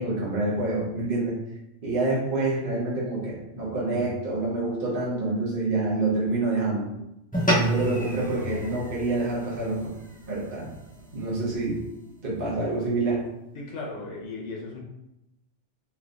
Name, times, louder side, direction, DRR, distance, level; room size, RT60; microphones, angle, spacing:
voice 1, 0.0-1.4 1.8-6.9 7.5-9.8 10.3-10.7 11.1-11.8 12.2-13.3, right 2 dB, 45° right, -6 dB, 1.2 m, -27 dB
sound 1, 7.3-11.9, right 1 dB, 10° left, 0.6 m, -30 dB
voice 2, 13.5-14.8, left 3 dB, 70° left, -2 dB, 1.2 m, -36 dB
3.4 x 3.1 x 2.5 m, 0.87 s
omnidirectional pair, 1.3 m